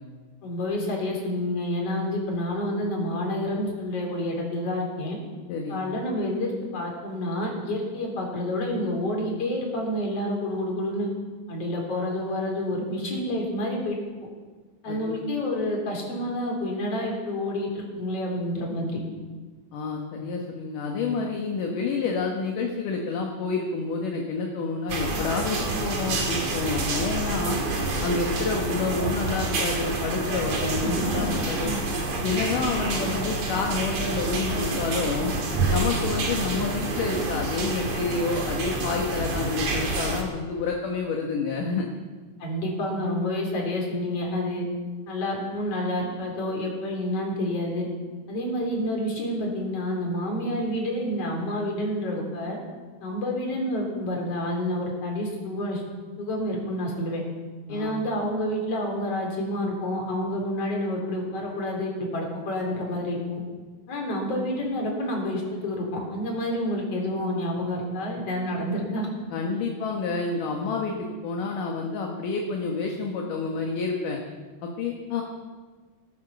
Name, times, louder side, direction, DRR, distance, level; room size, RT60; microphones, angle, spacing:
voice 1, 0.4-5.2 5.7-11.1 11.5-14.0 14.8-19.0 30.8-31.3 31.6-31.8 42.4-44.6 45.1-47.9 48.3-52.6 53.0-55.8 56.2-57.2 57.7-63.4 63.9-69.1, left 1 dB, 35° left, 0 dB, 4.2 m, -29 dB
voice 2, 5.5-5.8 14.9-15.2 19.7-27.6 28.0-31.7 32.2-35.3 35.7-41.8 57.7-57.9 69.3-74.2 74.6-75.2, left 4 dB, 60° left, 1 dB, 2.6 m, -29 dB
sound 1, 24.9-40.2, right 2 dB, 45° right, 3.0 m, -28 dB
18.5 x 11.5 x 6.8 m, 1.4 s
omnidirectional pair, 4.9 m